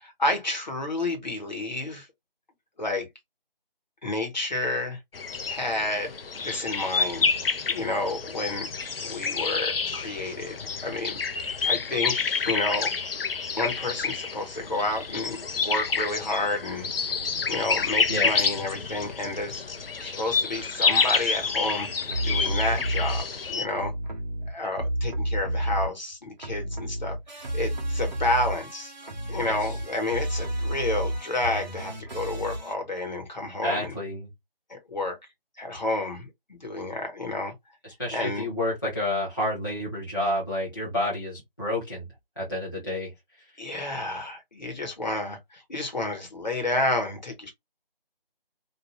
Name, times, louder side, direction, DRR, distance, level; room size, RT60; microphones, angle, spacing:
voice 1, 0.0-2.1 2.8-3.1 4.0-5.0 5.5-7.3 7.7-8.7 9.0-11.2 11.6-12.2 12.4-12.9 13.5-16.9 17.5-19.6 20.0-23.9 24.5-28.9 29.3-33.9 34.7-35.2 35.6-37.5 38.1-38.5 43.6-47.5, left 2 dB, 50° left, 1.2 m, -30 dB
sound 1, 5.1-23.7, left 5 dB, 75° left, 0.6 m, -28 dB
sound 2, 22.1-23.2 23.7-26.1 26.4-32.7, right 1 dB, 50° right, 0.8 m, -30 dB
voice 2, 33.6-34.3 38.0-42.1 42.4-43.1, left 1 dB, 20° left, 0.7 m, -29 dB
2.5 x 2.2 x 2.9 m
figure-of-eight pair, 170°, 29 cm